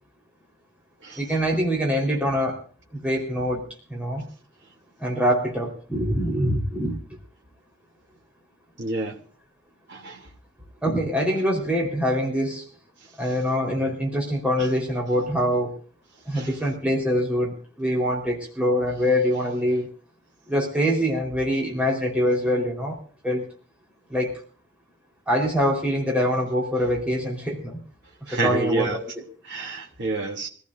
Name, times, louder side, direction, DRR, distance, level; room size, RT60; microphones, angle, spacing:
voice 1, 1.2-2.6 2.9-3.6 3.9-4.2 5.0-7.0 10.8-12.6 13.2-15.7 16.3-19.9 20.5-23.0 23.2-23.5 24.1-24.4 25.3-27.8 28.2-29.1, equal, 5° right, 4.1 m, -24 dB
voice 2, 8.8-9.2 9.9-10.2 16.3-16.5 28.3-29.0 29.5-30.5, right 2 dB, 55° right, 2.9 m, -28 dB
25.0 x 15.5 x 2.6 m
head